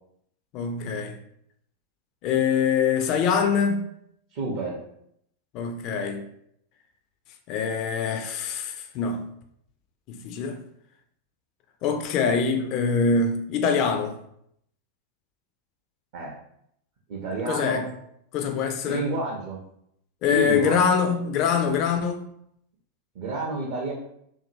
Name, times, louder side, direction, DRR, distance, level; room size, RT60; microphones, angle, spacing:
voice 1, 0.5-1.2 2.2-3.8 5.5-6.2 7.5-9.2 10.1-10.6 11.8-14.2 17.5-17.9 18.3-19.0 20.2-22.3, left 6 dB, 40° left, 0.3 m, -24 dB
voice 2, 4.3-4.8 16.1-16.4 17.1-17.9 18.8-19.6 20.3-20.8 23.1-23.9, right 2 dB, 50° right, 0.6 m, -30 dB
2.6 x 2.6 x 2.6 m
figure-of-eight pair, 90°, 0 cm